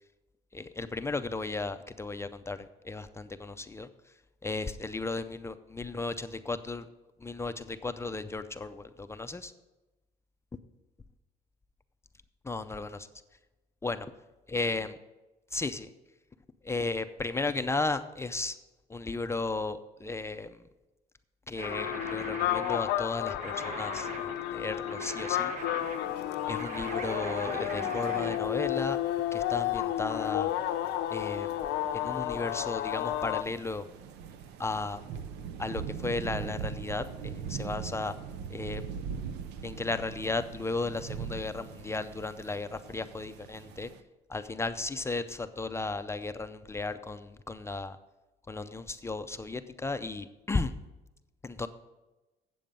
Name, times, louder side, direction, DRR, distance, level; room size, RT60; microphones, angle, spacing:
voice 1, 0.5-3.9 4.4-6.8 7.2-9.5 12.4-13.1 13.8-14.1 14.5-14.9 15.5-15.9 16.6-18.5 18.9-20.6 21.5-25.6 26.5-29.0 29.3-30.5 31.1-31.5 31.9-33.9 34.6-35.0 35.6-38.1 38.5-38.8 39.6-43.9 44.3-48.0 48.5-50.7 51.4-51.7, left 3 dB, 15° left, 10 dB, 0.4 m, -35 dB
sound 1, 21.5-28.4, right 4 dB, 55° right, 1.1 m, -41 dB
sound 2, 21.6-33.4, left 13 dB, 80° left, 0.5 m, -32 dB
sound 3, 25.8-44.0, right 7 dB, 85° right, 0.6 m, -43 dB
8.8 x 7.7 x 5.3 m, 1.1 s
cardioid pair, 110°, 17 cm